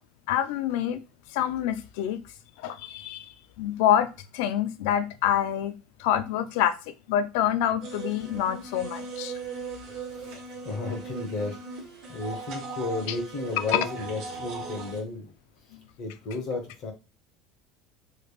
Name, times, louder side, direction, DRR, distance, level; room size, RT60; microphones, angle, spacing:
voice 1, 0.3-1.0 1.3-2.2 2.6-5.7 6.0-6.8 7.1-9.3 13.1-13.2 13.7-13.8 15.7-15.8, left 10 dB, 75° left, 0.4 m, -26 dB
sound 1, 7.8-15.0, right 3 dB, 50° right, 1.2 m, -38 dB
voice 2, 10.1-15.3 16.0-16.9, left 3 dB, 50° left, 1.0 m, -33 dB
3.2 x 3.2 x 2.4 m
cardioid pair, 140°, 0 cm